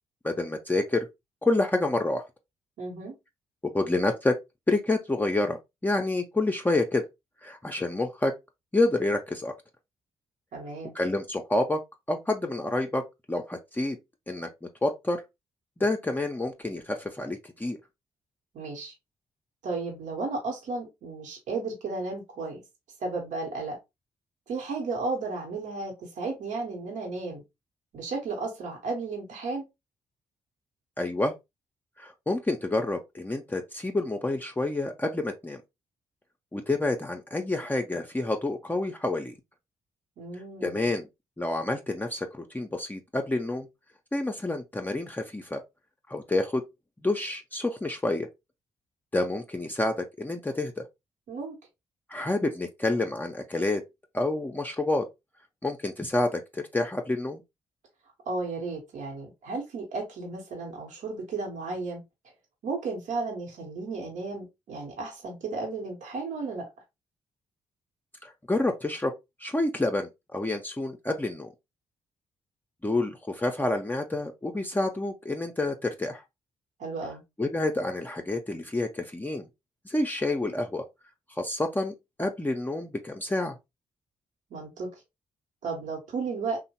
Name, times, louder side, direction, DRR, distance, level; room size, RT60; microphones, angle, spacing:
voice 1, 0.2-1.1 1.4-2.2 3.7-4.3 4.7-7.1 7.4-8.3 8.7-9.5 10.9-11.8 12.1-13.0 13.3-14.0 14.3-15.2 15.8-17.8 31.0-31.3 32.0-35.6 36.5-39.3 40.6-41.1 41.4-43.7 44.1-45.6 46.1-46.6 47.0-48.3 49.1-50.8 52.1-53.8 54.1-55.1 55.6-57.4 68.2-69.1 69.4-71.5 72.8-76.2 77.4-79.5 79.9-80.8 81.3-83.5, left 2 dB, 15° left, 0.5 m, -28 dB
voice 2, 2.8-3.1 10.5-10.9 18.5-18.9 19.6-22.6 23.0-23.8 24.5-27.4 27.9-29.7 40.2-40.9 51.3-51.6 58.3-62.0 62.6-66.7 76.8-77.2 84.5-84.9 85.6-86.6, right 3 dB, 70° right, 1.0 m, -34 dB
2.8 x 2.1 x 2.7 m
hypercardioid pair, 45°, 13 cm